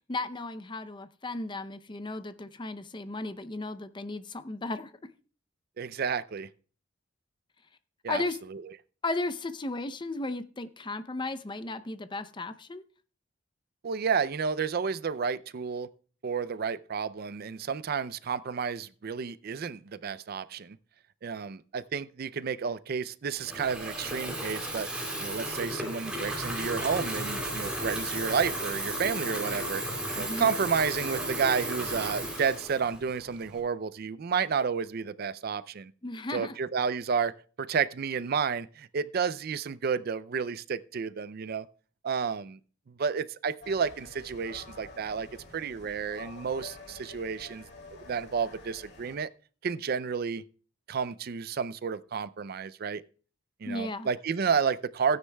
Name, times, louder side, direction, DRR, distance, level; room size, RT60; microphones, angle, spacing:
voice 1, 0.1-4.9 8.1-8.4 9.0-12.8 30.2-30.5 36.0-36.6 53.6-54.1, left 2 dB, 25° left, 0.6 m, -35 dB
voice 2, 5.8-6.5 8.0-8.2 8.5-8.6 13.8-15.9 16.2-20.8 21.2-24.9 25.2-29.8 30.1-35.9 36.3-41.7 42.0-42.6 42.9-45.3 45.5-47.7 47.9-49.3 49.6-50.4 50.9-53.0 53.6-55.2, right 6 dB, 50° right, 0.4 m, -31 dB
Water tap faucet / Fill (with liquid), 23.3-33.6, right 1 dB, 5° right, 3.2 m, -34 dB
sound 1, 43.6-49.2, left 2 dB, 60° left, 2.5 m, -48 dB
16.0 x 9.7 x 2.3 m
head